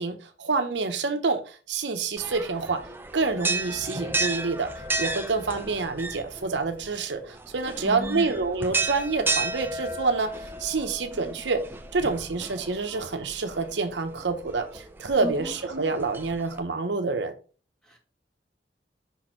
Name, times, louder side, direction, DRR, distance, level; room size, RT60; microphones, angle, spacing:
voice 1, 0.0-2.8 3.1-4.7 5.0-11.6 11.9-17.3, right 4 dB, 75° right, 0.8 m, -27 dB
sound 1, 2.2-16.6, right 3 dB, 10° right, 0.5 m, -34 dB
voice 2, 7.7-8.4 15.2-15.6 17.8-18.0, equal, 5° left, 1.8 m, -34 dB
5.6 x 4.3 x 4.4 m
head